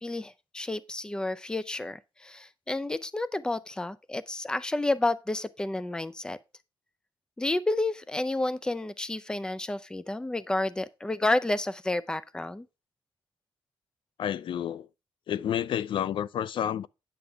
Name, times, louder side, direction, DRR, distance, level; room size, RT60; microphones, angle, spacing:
voice 1, 0.0-6.4 7.4-12.7, left 2 dB, 10° left, 0.5 m, -30 dB
voice 2, 14.2-14.9 15.3-16.9, left 10 dB, 65° left, 0.4 m, -30 dB
9.6 x 6.7 x 3.5 m
wide cardioid pair, 135°, 9 cm